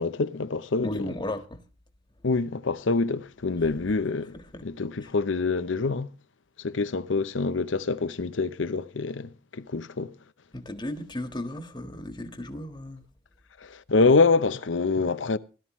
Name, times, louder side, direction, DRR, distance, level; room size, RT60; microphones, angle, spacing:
voice 1, 0.0-0.9 2.2-4.4 4.6-6.1 6.6-10.1 13.6-15.4, left 3 dB, 90° left, 0.7 m, -25 dB
voice 2, 0.8-1.6 4.3-4.6 5.0-5.1 10.5-13.0, left 1 dB, 25° left, 1.5 m, -35 dB
17.0 x 12.5 x 3.1 m
head